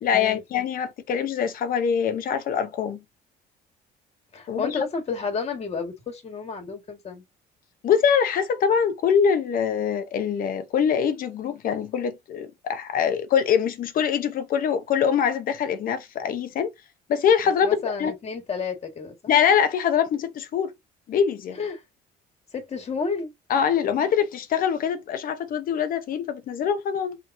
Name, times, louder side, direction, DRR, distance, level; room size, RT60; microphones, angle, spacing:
voice 1, 0.0-3.0 4.5-4.8 7.8-16.7 17.1-17.7 18.0-18.1 19.3-20.7 21.1-21.6 23.5-27.2, left 7 dB, 55° left, 0.8 m, -23 dB
voice 2, 4.3-7.2 17.6-19.3 21.5-21.8 22.5-23.3, left 5 dB, 40° left, 1.6 m, -31 dB
3.5 x 2.9 x 2.6 m
cardioid pair, 110°, 17 cm